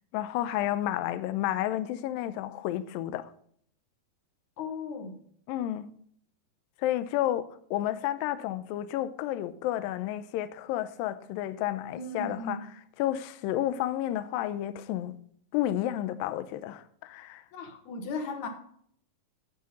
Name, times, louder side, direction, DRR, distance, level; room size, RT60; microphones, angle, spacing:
voice 1, 0.1-3.3 5.5-5.9 6.8-12.6 13.0-15.1 15.5-17.4, left 13 dB, 80° left, 2.1 m, -31 dB
voice 2, 4.6-5.2 11.9-12.7 17.5-18.5, left 3 dB, 60° left, 2.3 m, -36 dB
9.5 x 7.9 x 5.3 m
omnidirectional pair, 4.5 m